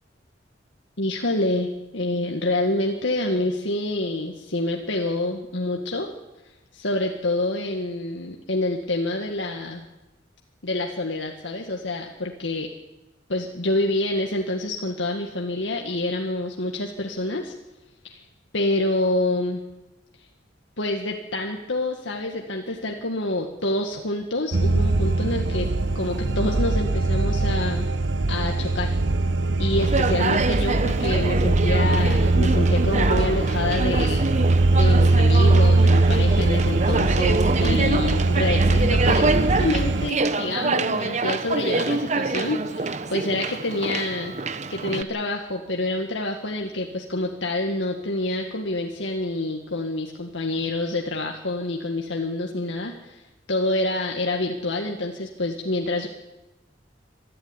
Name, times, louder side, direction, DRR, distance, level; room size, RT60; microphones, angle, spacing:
voice 1, 1.0-6.1 6.4-9.8 10.6-12.7 13.3-17.5 18.0-18.2 18.5-19.6 20.8-27.9 28.3-28.9 29.6-34.2 34.7-44.4 44.7-53.2 53.5-56.1, left 2 dB, 85° left, 1 dB, 2.0 m, -27 dB
sound 1, 24.5-40.1, right 2 dB, 75° right, 0.9 m, -21 dB
Conversation, 29.8-45.0, right 3 dB, 40° right, 1.0 m, -26 dB
26.0 x 12.5 x 9.8 m, 1.0 s
head